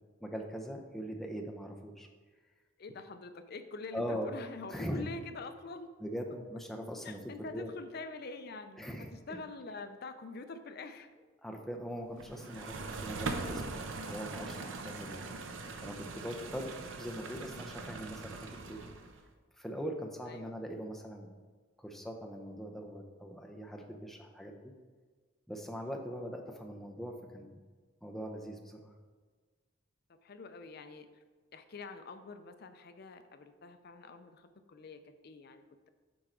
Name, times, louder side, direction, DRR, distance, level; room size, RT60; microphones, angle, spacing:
voice 1, 0.2-2.1 3.9-4.3 4.7-5.0 6.0-7.7 8.8-9.1 11.4-15.2 15.8-18.8 19.6-21.3 21.8-24.7 25.5-27.5 28.0-28.9, equal, ahead, 1 dB, 0.7 m, -41 dB
voice 2, 2.8-5.9 7.0-11.1 14.9-15.3 20.3-20.5 30.2-31.1 31.5-35.9, left 3 dB, 50° left, 9 dB, 0.5 m, -46 dB
sound 1, 12.2-19.2, right 3 dB, 75° right, 0.7 m, -41 dB
8.7 x 4.6 x 3.8 m, 1.5 s
head